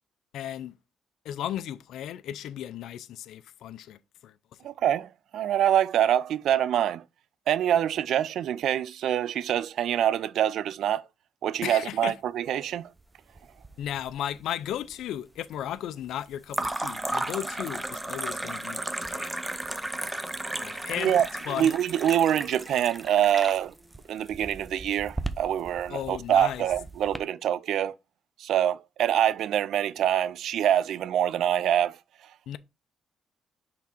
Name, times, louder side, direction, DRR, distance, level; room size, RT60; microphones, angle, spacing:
voice 1, 0.3-0.7 1.2-4.3 11.6-12.2 13.8-19.4 20.6-21.2 21.5-21.7 25.9-26.7 32.5-32.6, left 11 dB, 80° left, 0.5 m, -35 dB
voice 2, 4.6-7.0 7.5-11.0 11.4-12.9 20.7-23.7 24.1-28.0 28.4-32.0, right 10 dB, 75° right, 0.4 m, -25 dB
sound 1, 13.4-14.1 14.4-15.0 16.5-27.2, right 2 dB, 10° right, 0.6 m, -35 dB
6.0 x 3.6 x 4.3 m
cardioid pair, 90°, 0 cm